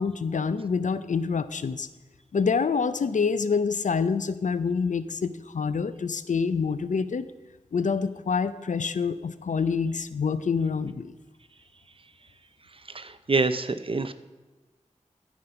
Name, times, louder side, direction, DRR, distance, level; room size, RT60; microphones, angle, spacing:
voice 1, 0.0-1.9 2.3-7.2 7.7-11.1, left 5 dB, 85° left, 14 dB, 0.5 m, -26 dB
voice 2, 12.9-14.1, right 3 dB, 45° right, 11 dB, 0.6 m, -26 dB
13.5 x 5.2 x 5.7 m, 1.2 s
wide cardioid pair, 80°, 13 cm